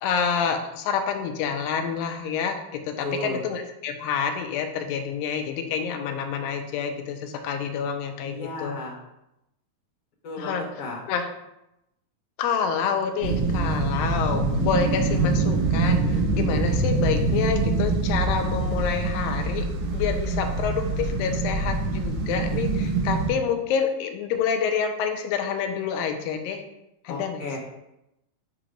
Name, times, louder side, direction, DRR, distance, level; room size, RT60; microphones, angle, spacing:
voice 1, 0.0-8.7 10.4-10.6 11.1-11.3 12.4-19.7 19.9-26.6 27.0-27.6, left 6 dB, 85° left, 5 dB, 2.4 m, -28 dB
voice 2, 3.0-3.4 8.2-9.0 10.2-11.0 27.1-27.6, left 2 dB, 55° left, -5 dB, 1.9 m, -34 dB
sound 1, 13.2-23.3, right 3 dB, 75° right, 1.8 m, -24 dB
8.2 x 2.9 x 5.0 m, 0.87 s
omnidirectional pair, 4.1 m